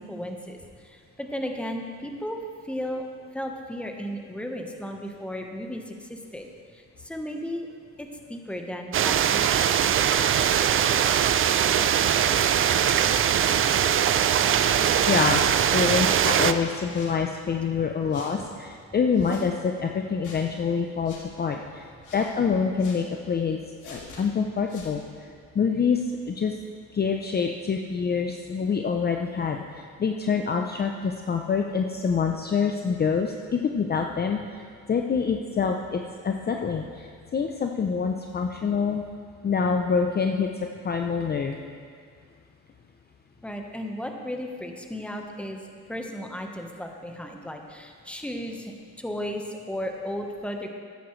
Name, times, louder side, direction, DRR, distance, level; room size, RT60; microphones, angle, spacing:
voice 1, 0.0-3.0 3.3-7.7 8.0-9.8 43.4-45.6 45.9-50.7, equal, 5° left, 3 dB, 1.1 m, -35 dB
sound 1, 8.9-16.5, right 9 dB, 45° right, 0.5 m, -21 dB
sound 2, 14.7-15.1 15.8-16.1 16.8-17.2 18.1-18.3 19.1-19.5 20.2-20.5 21.0-21.2 22.0-22.3 22.8-23.0 23.8-24.2 24.7-25.0, left 3 dB, 80° left, 1.9 m, -45 dB
voice 2, 15.1-15.4 15.7-21.9 22.1-26.6 26.9-39.0 39.4-41.6, left 5 dB, 35° left, 3 dB, 0.6 m, -26 dB
13.5 x 10.0 x 3.2 m, 2.1 s
cardioid pair, 90°, 30 cm